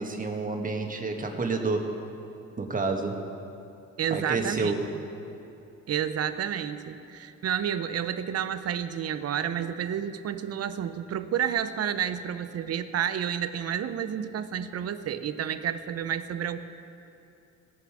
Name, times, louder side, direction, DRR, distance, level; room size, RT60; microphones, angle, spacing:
voice 1, 0.0-2.0 2.6-3.3 4.1-4.9, right 3 dB, 25° right, 3 dB, 1.4 m, -29 dB
voice 2, 4.0-4.7 5.9-16.6, right 9 dB, 55° right, 12 dB, 0.7 m, -30 dB
19.0 x 7.0 x 4.8 m, 2.7 s
cardioid pair, 90°, 30 cm